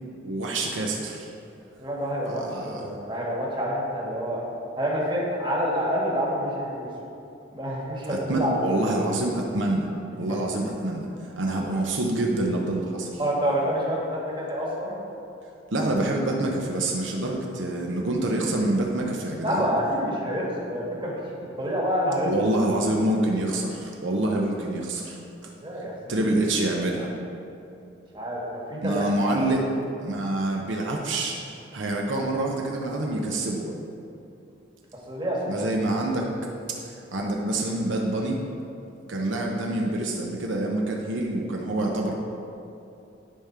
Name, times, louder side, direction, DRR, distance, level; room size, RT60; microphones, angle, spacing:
voice 1, 0.2-1.3 2.3-2.9 8.1-9.9 10.2-11.1 11.4-13.2 15.7-19.7 22.3-25.5 26.1-27.1 28.8-29.6 30.0-31.4 31.7-33.7 35.5-36.3 36.7-38.4 39.1-42.1, right 1 dB, 75° right, 0 dB, 0.8 m, -26 dB
voice 2, 1.8-4.5 4.8-6.9 7.5-9.0 10.3-10.4 13.2-15.0 19.4-21.2 21.6-22.3 25.6-26.3 28.1-29.0 29.4-29.5 35.1-35.6 37.0-37.1, equal, 25° right, -4 dB, 1.4 m, -28 dB
10.5 x 3.7 x 5.7 m, 2.7 s
head